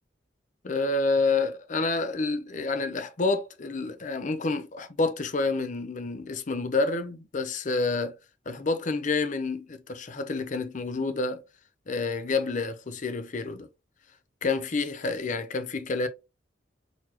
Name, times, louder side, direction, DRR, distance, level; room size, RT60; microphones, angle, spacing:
voice 1, 0.6-8.2 8.5-11.4 11.9-13.7 14.4-16.1, left 3 dB, 45° left, 0.6 m, -28 dB
4.1 x 2.9 x 2.8 m
head